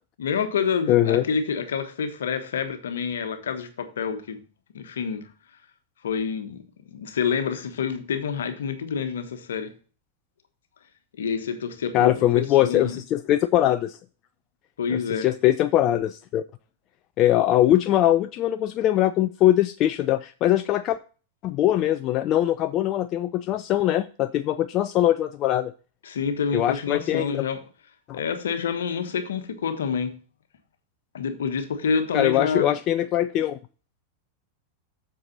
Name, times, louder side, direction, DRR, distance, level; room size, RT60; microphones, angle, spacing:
voice 1, 0.2-4.4 4.7-5.3 6.0-9.8 11.1-13.0 14.8-15.3 26.0-27.6 28.1-30.2 31.1-32.8, left 6 dB, 65° left, 1.3 m, -28 dB
voice 2, 0.9-1.2 11.9-14.0 14.9-16.4 17.2-21.0 21.4-25.7 26.5-27.4 28.1-28.2 32.1-33.6, left 13 dB, 35° left, 0.4 m, -22 dB
7.8 x 6.8 x 4.0 m
figure-of-eight pair, 90°, 0 cm